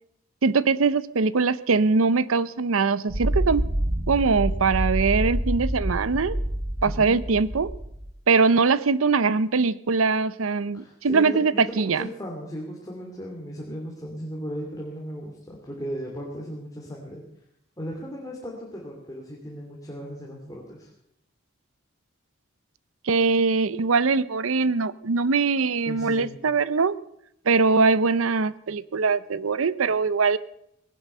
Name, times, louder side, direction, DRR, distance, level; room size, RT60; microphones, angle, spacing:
voice 1, 0.4-3.7 4.1-6.4 6.8-7.7 8.3-12.1 23.0-26.9 27.5-30.4, right 4 dB, 85° right, 18 dB, 0.6 m, -22 dB
sound 1, 3.1-8.1, right 1 dB, 65° right, 5.5 m, -27 dB
voice 2, 6.8-7.2 10.7-17.2 17.8-20.9 25.9-26.4, equal, 15° left, -2 dB, 2.8 m, -36 dB
19.0 x 11.0 x 6.7 m, 0.77 s
head